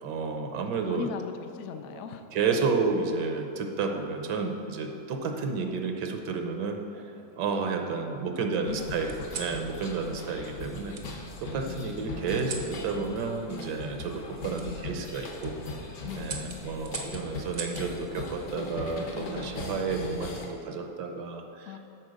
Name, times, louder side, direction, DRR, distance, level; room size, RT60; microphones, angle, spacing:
voice 1, 0.0-1.1 2.3-6.8 7.4-15.5 16.1-21.7, right 4 dB, 75° right, 4 dB, 1.3 m, -31 dB
voice 2, 0.8-2.2 8.4-9.5 10.0-10.1 11.6-12.2 14.6-15.2 16.0-16.8 19.1-19.9 21.6-21.8, left 7 dB, 85° left, 7 dB, 0.6 m, -40 dB
sound 1, 1.7-2.8 3.9-4.3 5.6-6.3 6.9-7.8 9.1-9.6 10.9-11.1 12.4-12.7 14.5-14.7 15.2-15.5 16.2-17.9 19.4-19.8, right 5 dB, 55° right, 0.8 m, -42 dB
sound 2, 8.7-20.5, left 2 dB, 60° left, 1.4 m, -39 dB
8.6 x 4.4 x 6.4 m, 2.7 s
omnidirectional pair, 1.9 m